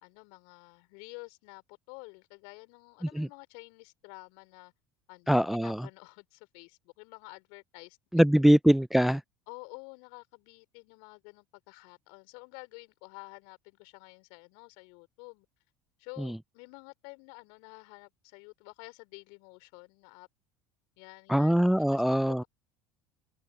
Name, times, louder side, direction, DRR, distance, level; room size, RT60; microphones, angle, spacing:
voice 1, 0.0-4.7 5.1-8.2 9.5-15.5 16.0-20.3 21.0-21.5 21.9-22.5, left 35 dB, 65° left, 4.2 m, -50 dB
voice 2, 5.3-5.9 8.1-9.2 16.2-16.3 21.3-22.4, equal, ahead, 0.3 m, -23 dB
open air
figure-of-eight pair, 70°, 9 cm